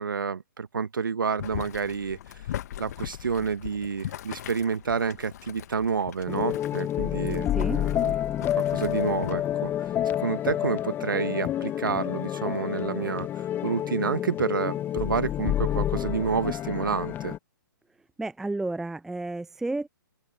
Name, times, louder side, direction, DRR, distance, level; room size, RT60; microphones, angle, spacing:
voice 1, 0.0-2.2 2.8-8.1 8.6-17.3, right 6 dB, 75° right, 1.7 m, -29 dB
Boiling, 1.4-9.3, left 11 dB, 50° left, 1.1 m, -40 dB
sound 1, 6.3-17.4, left 11 dB, 20° left, 1.0 m, -29 dB
voice 2, 18.2-19.9, right 2 dB, 5° right, 0.5 m, -31 dB
open air
figure-of-eight pair, 130°, 11 cm